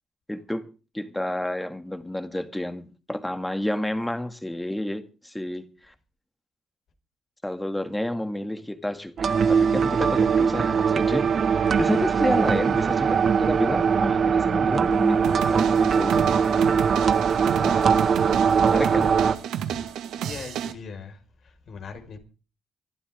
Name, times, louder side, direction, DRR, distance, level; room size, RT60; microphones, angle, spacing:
voice 1, 0.3-0.7 0.9-5.9 7.4-16.3 17.6-18.2 18.6-19.1, left 1 dB, 5° left, 2.3 m, -30 dB
sound 1, 9.2-19.4, right 6 dB, 50° right, 1.5 m, -21 dB
voice 2, 12.8-13.3 19.7-22.2, left 5 dB, 60° left, 5.1 m, -42 dB
sound 2, 15.2-20.7, right 9 dB, 85° right, 2.3 m, -32 dB
25.5 x 11.5 x 3.7 m
cardioid pair, 90°, 0 cm